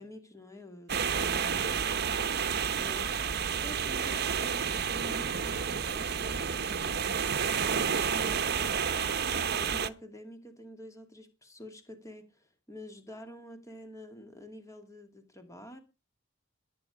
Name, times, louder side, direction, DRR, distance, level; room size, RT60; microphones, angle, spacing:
voice 1, 0.0-3.2 3.5-7.1 7.5-8.8 9.3-15.8, equal, 15° left, 2.4 m, -47 dB
sound 1, 0.9-9.9, right 7 dB, 50° right, 0.9 m, -30 dB
20.0 x 9.6 x 5.0 m
head